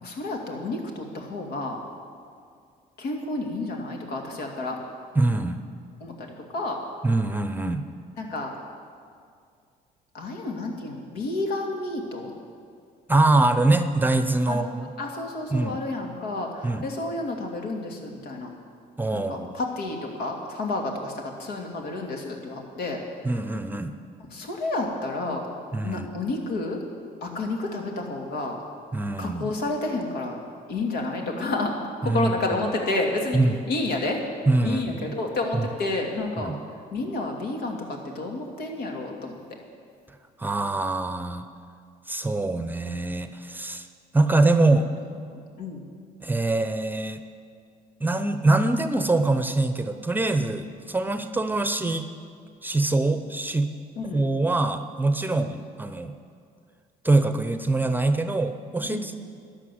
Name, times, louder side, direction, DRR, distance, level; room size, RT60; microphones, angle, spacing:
voice 1, 0.0-1.8 3.0-4.8 6.0-6.8 8.2-8.5 10.1-12.3 14.5-18.5 19.1-23.0 24.3-25.5 25.8-26.8 27.2-28.6 29.2-30.4 30.7-31.7 32.0-33.4 33.7-34.2 34.6-36.5 36.9-39.4 45.3-45.8 54.0-54.3 55.2-55.5 58.8-59.2, left 2 dB, 80° left, 1 dB, 2.5 m, -30 dB
voice 2, 5.1-5.6 7.0-7.8 13.1-14.9 15.5-15.8 16.6-16.9 19.0-19.5 23.2-23.9 25.7-26.1 28.9-29.5 32.0-32.3 33.3-33.6 34.5-35.1 35.5-35.7 36.4-36.6 40.4-41.5 42.1-43.9 44.1-44.9 46.2-47.2 48.0-52.1 52.6-53.7 54.1-56.1 57.0-59.2, right 2 dB, 10° right, 9 dB, 0.7 m, -24 dB
12.5 x 10.0 x 7.8 m, 2.2 s
cardioid pair, 110°, 17 cm